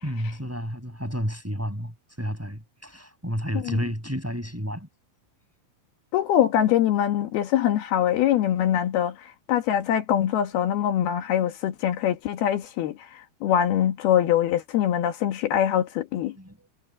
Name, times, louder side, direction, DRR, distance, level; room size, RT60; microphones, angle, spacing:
voice 1, 0.0-4.9 16.3-16.7, equal, 5° right, 6.0 m, -31 dB
voice 2, 6.1-16.3, left 10 dB, 80° left, 3.4 m, -23 dB
omnidirectional pair, 4.4 m